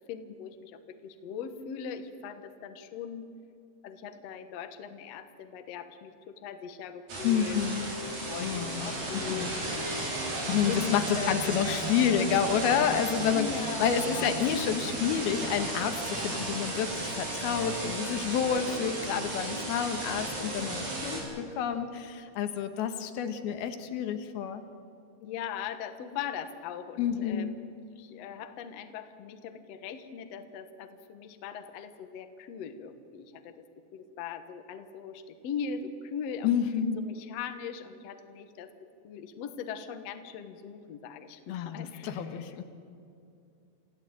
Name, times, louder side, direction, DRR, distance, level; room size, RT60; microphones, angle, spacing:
voice 1, 0.1-3.3 3.8-7.6 8.3-10.1 10.7-11.9 13.3-14.4 25.2-33.6 33.9-36.5 37.0-38.7 39.0-42.5, left 7 dB, 85° left, 9 dB, 1.4 m, -40 dB
sound 1, 7.1-21.2, right 2 dB, 45° right, 6.0 m, -34 dB
voice 2, 7.2-7.9 8.4-9.6 10.5-24.6 27.0-27.5 36.4-37.0 41.5-42.6, left 8 dB, 70° left, 8 dB, 3.0 m, -29 dB
27.5 x 15.5 x 8.9 m, 2.5 s
omnidirectional pair, 5.0 m